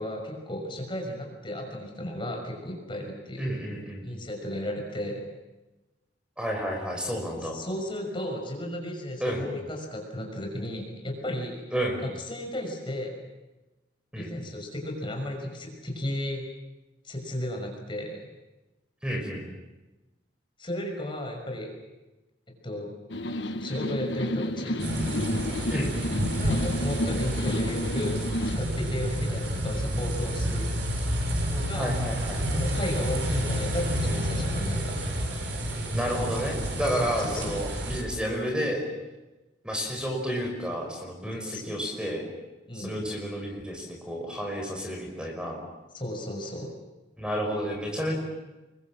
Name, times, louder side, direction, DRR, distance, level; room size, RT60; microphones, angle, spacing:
voice 1, 0.0-3.5 4.0-5.2 7.4-11.6 12.2-13.2 14.1-16.4 17.0-18.3 20.6-21.7 22.6-22.9 23.6-24.9 26.4-28.3 28.6-30.7 31.5-31.9 32.5-35.0 37.0-37.5 41.4-41.6 42.7-42.9 45.9-46.7, left 1 dB, 30° left, 2 dB, 6.1 m, -34 dB
voice 2, 3.4-4.1 6.4-7.6 9.2-9.4 11.7-12.0 14.1-14.3 19.0-19.4 25.7-25.9 31.7-32.5 35.9-38.8 39.6-42.3 42.7-45.6 47.2-48.2, equal, 5° right, 1 dB, 5.3 m, -31 dB
sound 1, 23.1-28.6, left 1 dB, 85° left, 1.4 m, -31 dB
sound 2, 24.8-38.0, equal, 90° right, 6.8 m, -29 dB
29.0 x 22.5 x 7.5 m, 1.1 s
head